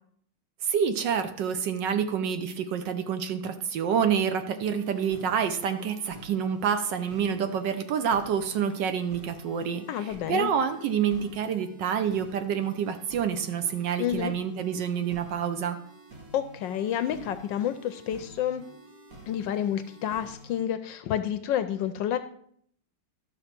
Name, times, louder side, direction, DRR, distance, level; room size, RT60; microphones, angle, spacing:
voice 1, 0.6-15.8, right 7 dB, 70° right, 9 dB, 1.2 m, -28 dB
sound 1, 4.6-20.6, equal, 45° right, 1.8 m, -49 dB
voice 2, 9.9-10.5 14.0-14.3 16.3-18.6 19.3-22.2, left 10 dB, 75° left, 11 dB, 1.1 m, -29 dB
12.0 x 6.3 x 4.4 m, 0.64 s
omnidirectional pair, 2.3 m